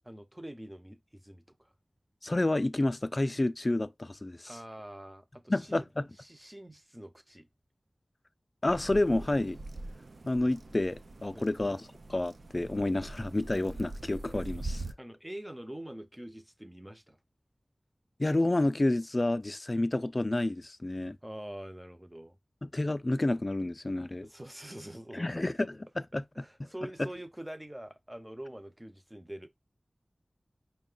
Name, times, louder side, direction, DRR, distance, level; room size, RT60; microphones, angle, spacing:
voice 1, 0.0-1.7 4.4-5.9 6.2-7.5 11.3-11.5 15.0-17.2 21.2-22.4 24.2-25.3 26.3-29.5, right 1 dB, 15° right, 0.6 m, -45 dB
voice 2, 2.2-4.5 5.5-6.0 8.6-9.6 10.3-11.8 12.1-14.8 18.2-21.2 22.6-24.3 25.1-26.2 27.0-27.1, left 2 dB, 40° left, 0.3 m, -29 dB
sound 1, 8.7-14.9, right 2 dB, 85° right, 0.4 m, -43 dB
5.1 x 2.1 x 3.8 m
wide cardioid pair, 70°, 0 cm